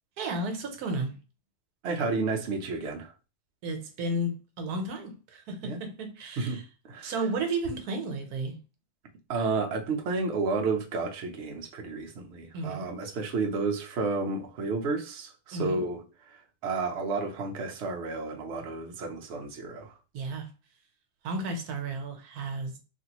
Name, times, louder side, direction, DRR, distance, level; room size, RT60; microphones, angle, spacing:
voice 1, 0.2-1.2 3.6-6.6 7.0-8.6 12.5-12.9 15.5-15.9 20.1-20.5 21.2-22.8, right 2 dB, 75° right, 1.2 m, -33 dB
voice 2, 1.8-3.1 5.6-5.8 6.4-7.1 9.3-16.0 16.3-20.0, right 3 dB, 55° right, 0.8 m, -31 dB
3.3 x 2.5 x 2.9 m
omnidirectional pair, 1.7 m